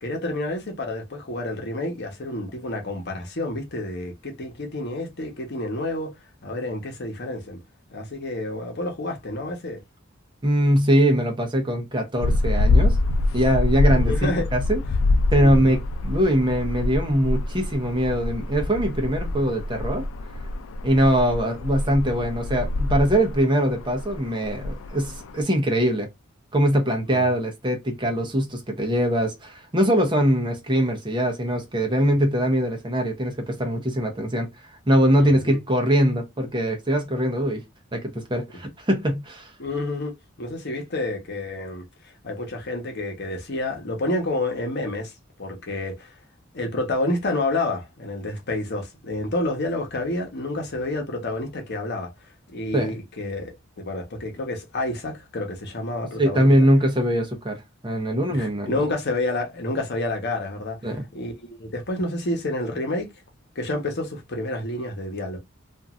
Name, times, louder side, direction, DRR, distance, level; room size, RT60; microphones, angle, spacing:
voice 1, 0.0-6.1 6.4-7.6 7.9-9.8 13.9-14.5 15.4-15.8 27.0-27.3 35.2-35.6 39.6-45.1 45.4-46.1 46.5-52.1 52.5-56.5 58.3-60.8 61.1-63.1 63.5-65.4, left 2 dB, 55° left, 1.0 m, -29 dB
voice 2, 10.4-13.0 13.3-14.8 15.3-20.0 20.8-26.1 26.5-34.5 34.9-37.6 37.9-39.5 52.7-53.0 56.2-57.6 57.8-58.7 60.8-61.0, equal, 25° right, 0.8 m, -22 dB
sound 1, 12.2-25.4, left 2 dB, 80° left, 0.4 m, -25 dB
3.0 x 2.5 x 2.4 m
head